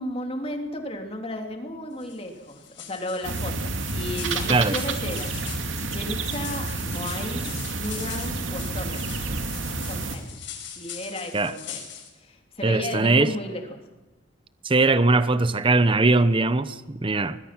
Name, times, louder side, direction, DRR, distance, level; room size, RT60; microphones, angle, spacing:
voice 1, 0.0-5.4 5.8-9.3 9.9-10.5 10.8-11.8 12.2-13.8, left 1 dB, 30° left, 3.1 m, -34 dB
sound 1, 2.0-12.1, left 9 dB, 70° left, 5.6 m, -42 dB
sound 2, 3.2-10.2, right 3 dB, 90° right, 2.4 m, -30 dB
voice 2, 12.6-13.3 14.6-17.4, right 3 dB, 25° right, 0.8 m, -20 dB
24.5 x 21.0 x 6.0 m
head